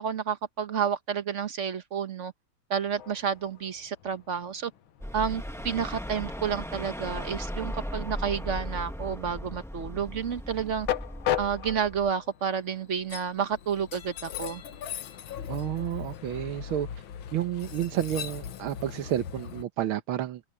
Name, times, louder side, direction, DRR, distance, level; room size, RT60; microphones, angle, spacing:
voice 1, 0.0-2.3 2.7-4.7 5.1-10.9 11.4-14.6, right 7 dB, 45° right, 1.1 m, -30 dB
Train, 2.9-19.6, left 10 dB, 75° left, 1.9 m, -38 dB
sound 1, 5.0-12.1, equal, ahead, 0.9 m, -37 dB
voice 2, 15.5-16.9 17.3-20.4, right 12 dB, 75° right, 1.7 m, -30 dB
open air
omnidirectional pair, 2.3 m